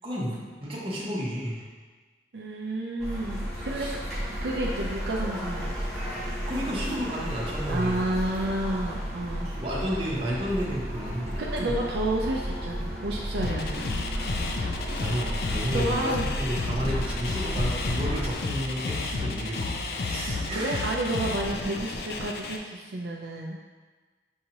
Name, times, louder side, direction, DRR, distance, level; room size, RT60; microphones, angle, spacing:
voice 1, 0.0-1.6 3.7-3.9 6.5-8.0 9.6-11.8 15.0-20.8, equal, 30° right, -5 dB, 0.9 m, -32 dB
voice 2, 2.3-3.9 4.4-5.7 7.7-9.5 11.4-13.9 15.7-16.2 20.5-23.6, right 1 dB, 70° right, -2 dB, 0.4 m, -30 dB
sound 1, 3.0-18.3, equal, 5° left, 1.2 m, -33 dB
sound 2, 13.4-22.6, left 3 dB, 55° left, 0.4 m, -31 dB
6.3 x 2.8 x 2.9 m, 1.4 s
head